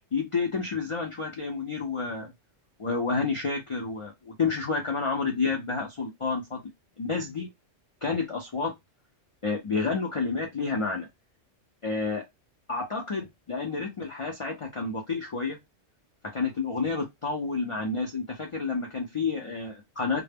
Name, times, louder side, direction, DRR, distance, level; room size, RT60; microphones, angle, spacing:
voice 1, 0.1-2.3 2.8-6.6 7.0-7.5 8.0-8.7 9.4-11.1 11.8-12.2 12.7-15.6 16.2-20.2, left 4 dB, 55° left, 0.3 m, -30 dB
2.1 x 2.0 x 3.4 m
omnidirectional pair, 1.3 m